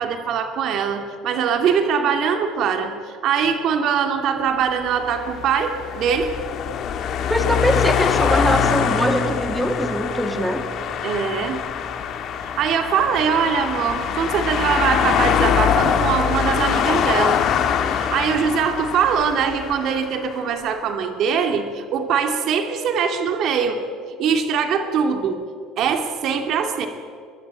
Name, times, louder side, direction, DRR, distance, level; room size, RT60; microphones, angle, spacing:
voice 1, 0.0-6.4 11.0-11.6 12.6-17.4 17.9-23.8 24.2-25.4 25.8-26.9, right 6 dB, 50° right, 5 dB, 2.7 m, -22 dB
sound 1, 5.0-20.4, left 8 dB, 45° left, 2.4 m, -23 dB
voice 2, 7.3-10.7, equal, 5° right, 6 dB, 2.4 m, -22 dB
29.0 x 22.5 x 9.1 m, 2.3 s
cardioid pair, 155°, 0 cm